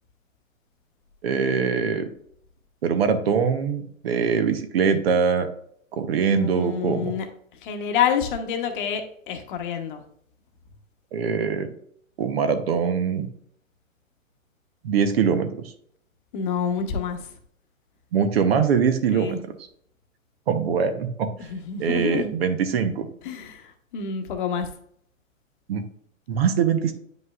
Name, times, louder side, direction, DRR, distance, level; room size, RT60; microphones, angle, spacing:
voice 1, 1.2-2.1 2.8-5.5 5.9-7.1 11.1-11.7 12.2-13.3 14.8-15.6 18.1-19.4 20.5-21.5 21.8-23.1 25.7-25.9 26.3-26.9, right 6 dB, 50° right, 10 dB, 0.9 m, -23 dB
voice 2, 6.3-7.3 7.6-10.0 16.3-17.2 19.1-19.4 21.4-22.3 23.2-24.7, left 7 dB, 40° left, 5 dB, 1.1 m, -28 dB
9.5 x 5.3 x 2.4 m, 0.66 s
hypercardioid pair, 145°, 41 cm